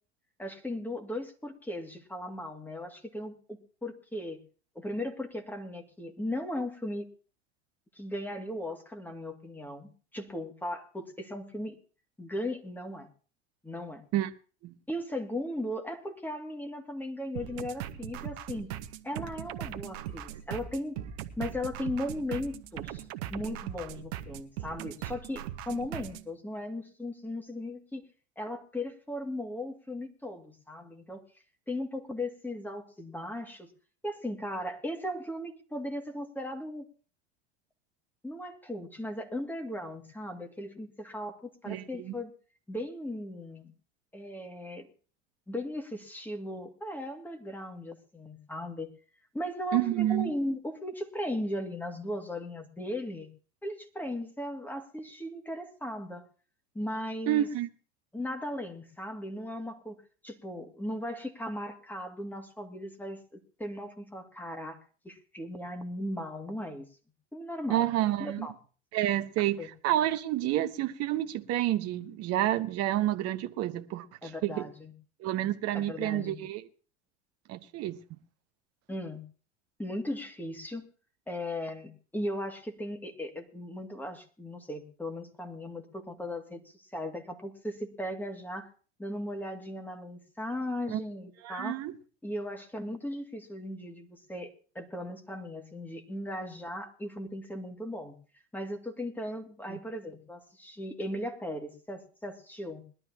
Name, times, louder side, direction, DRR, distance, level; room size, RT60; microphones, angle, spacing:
voice 1, 0.4-4.4 4.8-7.1 8.0-11.8 12.2-13.1 13.6-14.0 14.9-18.7 19.0-21.0 21.4-23.0 23.3-28.0 28.4-31.2 31.7-33.7 34.0-36.9 38.2-42.3 42.7-43.7 44.1-44.9 45.5-48.9 49.3-53.3 53.6-56.3 56.7-57.5 58.1-60.0 60.2-64.8 65.0-66.9 67.3-67.9 68.2-68.5 69.6-69.7 74.2-74.9 75.7-76.4 78.9-79.2 79.8-80.9 81.3-86.6 86.9-88.7 89.0-91.8 92.2-98.1 98.5-102.8, left 1 dB, 5° left, 2.3 m, -37 dB
sound 1, 17.4-26.3, right 11 dB, 65° right, 1.3 m, -39 dB
voice 2, 41.7-42.1 49.7-50.3 57.3-57.7 67.7-68.5 68.9-74.7 75.2-76.6 77.5-78.0 90.9-91.0 91.4-91.9 99.7-99.8, right 13 dB, 45° right, 1.0 m, -29 dB
21.0 x 12.0 x 2.9 m
hypercardioid pair, 90°, 35 cm